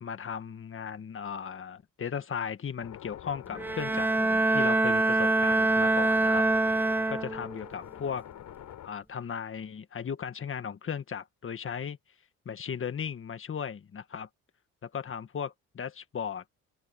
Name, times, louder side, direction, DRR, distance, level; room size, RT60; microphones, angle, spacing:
voice 1, 0.0-6.8 7.1-8.3 8.8-12.0 12.5-14.3 14.8-16.4, left 7 dB, 45° left, 1.8 m, -36 dB
sound 1, 2.8-8.9, left 11 dB, 75° left, 5.4 m, -46 dB
Bowed string instrument, 3.5-7.6, right 2 dB, 5° right, 0.4 m, -25 dB
open air
cardioid pair, 90°, 30 cm